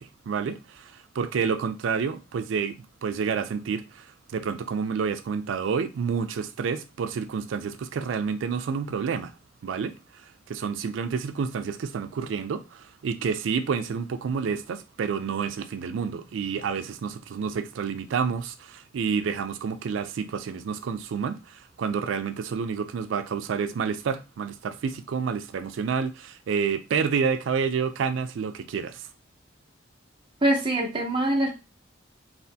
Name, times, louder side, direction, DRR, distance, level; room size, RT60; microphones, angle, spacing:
voice 1, 0.0-2.8 3.0-9.3 9.6-29.1, right 6 dB, 85° right, 0.4 m, -29 dB
voice 2, 30.4-31.5, right 1 dB, 25° right, 0.7 m, -23 dB
3.3 x 2.4 x 2.6 m
head